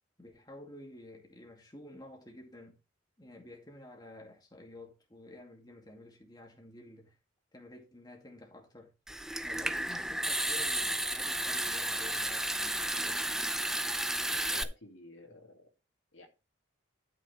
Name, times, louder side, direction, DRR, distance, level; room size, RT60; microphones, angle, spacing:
voice 1, 0.2-2.8 3.2-7.2 7.5-8.9 9.4-13.3, left 1 dB, 20° left, 2.3 m, -51 dB
Water tap faucet / Sink (filling or washing) / Trickle dribble, 9.1-14.6, right 1 dB, ahead, 0.5 m, -32 dB
voice 2, 14.3-15.7 16.1-16.3, left 2 dB, 80° left, 2.4 m, -52 dB
12.0 x 6.5 x 3.3 m
head